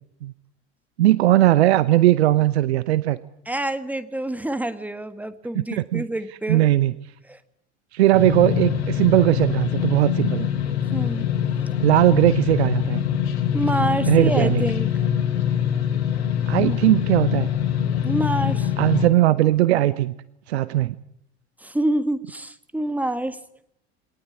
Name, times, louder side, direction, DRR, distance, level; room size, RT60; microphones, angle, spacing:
voice 1, 1.0-3.2 5.5-6.1 6.5-6.9 7.9-10.5 11.8-13.0 14.1-14.6 16.5-17.5 18.8-20.1 20.5-21.0, right 14 dB, 65° right, 16 dB, 0.9 m, -19 dB
voice 2, 3.5-6.6 7.3-7.4 10.9-11.3 13.5-14.9 16.6-16.8 18.0-18.7 21.6-23.4, right 1 dB, 5° right, 12 dB, 1.6 m, -27 dB
sound 1, 8.1-19.1, left 9 dB, 65° left, 3.2 m, -24 dB
22.5 x 18.5 x 8.6 m, 0.76 s
figure-of-eight pair, 65°, 34 cm